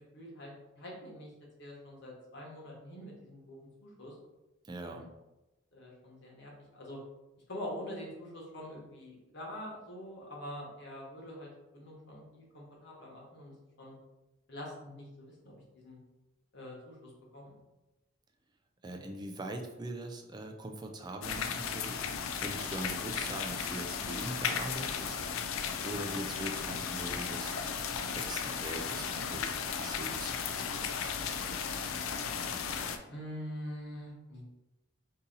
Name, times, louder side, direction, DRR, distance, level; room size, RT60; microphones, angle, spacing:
voice 1, 0.1-0.5 0.8-1.3 1.6-4.1 4.8-5.0 5.7-7.0 7.5-14.0 14.5-16.0 16.5-17.6 33.1-34.4, left 1 dB, 60° left, -3 dB, 1.1 m, -45 dB
voice 2, 4.6-5.1 18.8-22.1 22.4-25.2 25.8-27.6 28.1-30.9, right 1 dB, 20° right, 3 dB, 0.3 m, -41 dB
sound 1, 21.2-33.0, left 6 dB, 90° left, 0.4 m, -35 dB
2.8 x 2.7 x 3.8 m, 1.0 s
head